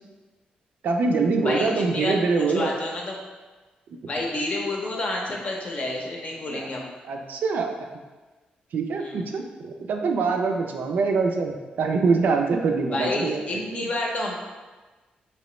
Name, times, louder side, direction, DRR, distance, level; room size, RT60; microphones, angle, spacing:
voice 1, 0.8-2.7 6.5-6.7 7.1-7.8 8.7-13.9, right 4 dB, 70° right, 3 dB, 0.4 m, -24 dB
voice 2, 1.4-3.2 4.1-6.9 9.0-9.2 12.9-14.3, left 2 dB, 45° left, -1 dB, 0.6 m, -29 dB
3.0 x 2.9 x 3.1 m, 1.3 s
cardioid pair, 100°, 3 cm